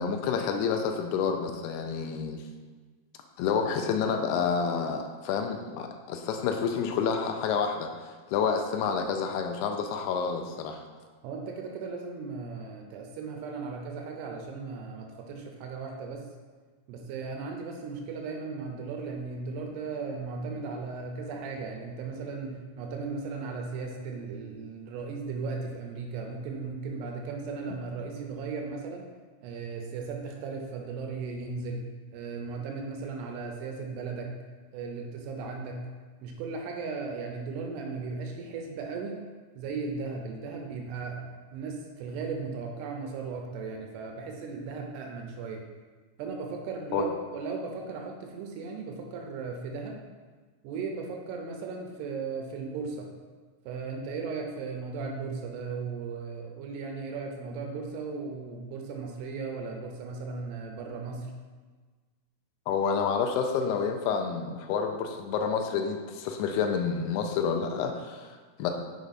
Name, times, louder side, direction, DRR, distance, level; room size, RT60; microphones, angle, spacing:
voice 1, 0.0-2.4 3.4-7.9 8.3-10.8 46.9-47.0 62.7-68.7, left 6 dB, 80° left, 4 dB, 2.6 m, -29 dB
voice 2, 11.2-16.2 16.9-29.1 29.4-31.9 32.1-34.3 34.7-35.8 36.2-39.2 39.6-45.6 46.2-50.0 50.6-53.1 53.7-61.3, right 4 dB, 85° right, 2 dB, 2.8 m, -36 dB
6.6 x 4.7 x 4.0 m, 1.4 s
omnidirectional pair, 4.7 m